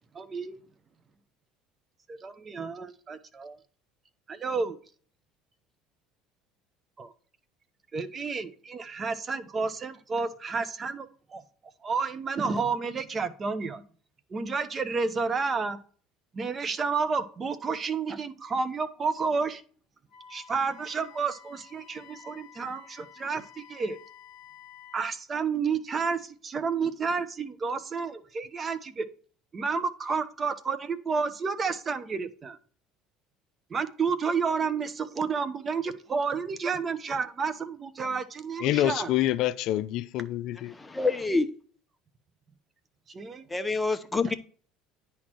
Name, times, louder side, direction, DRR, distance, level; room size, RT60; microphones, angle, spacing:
voice 1, 0.1-0.6 2.1-3.6 4.3-4.8 7.0-7.1 7.9-11.4 11.8-13.8 14.3-15.8 16.3-19.6 20.3-24.0 24.9-29.1 29.5-32.6 33.7-39.1 43.1-43.4, right 5 dB, 30° right, 0.9 m, -30 dB
Wind instrument woodwind instrument, 20.1-25.1, left 8 dB, 45° left, 1.5 m, -51 dB
voice 2, 38.6-40.7, left 14 dB, 65° left, 0.5 m, -27 dB
voice 3, 40.7-41.5 43.5-44.3, left 3 dB, 15° left, 0.9 m, -27 dB
10.0 x 4.4 x 4.5 m
supercardioid pair, 100°, 0 cm